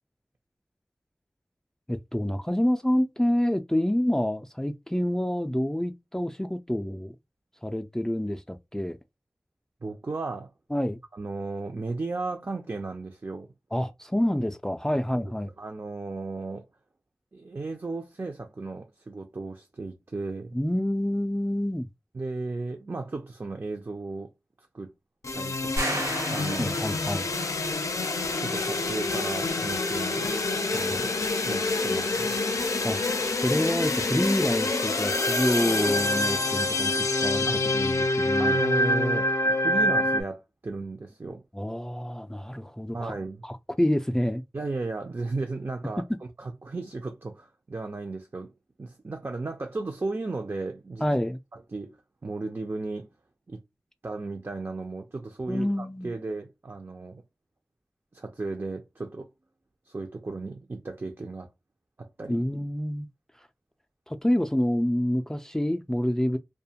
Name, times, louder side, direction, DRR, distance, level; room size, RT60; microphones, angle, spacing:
voice 1, 1.9-7.1 7.6-9.0 10.7-11.0 13.7-15.5 20.5-21.9 26.6-27.3 30.9-31.0 32.8-33.0 33.4-38.6 41.5-43.1 43.4-44.4 46.1-46.2 51.0-51.4 55.5-56.1 62.3-63.1 64.1-66.4, left 1 dB, 10° left, 0.3 m, -27 dB
voice 2, 9.8-10.5 11.1-13.5 14.9-15.3 15.6-16.7 17.3-20.5 22.1-24.3 24.7-24.9 25.3-26.8 28.4-30.4 30.7-31.1 31.4-32.4 37.5-37.6 38.4-41.4 42.9-43.4 44.5-46.0 46.4-48.5 48.8-51.0 51.5-52.0 52.2-53.1 53.5-53.6 54.0-57.2 58.1-59.3 59.9-61.5 62.0-62.4, right 3 dB, 50° right, 0.5 m, -35 dB
sound 1, 25.2-40.2, left 2 dB, 85° left, 0.4 m, -26 dB
sound 2, 25.8-27.3, right 1 dB, 90° right, 0.8 m, -32 dB
2.4 x 2.2 x 2.7 m
wide cardioid pair, 55°, 5 cm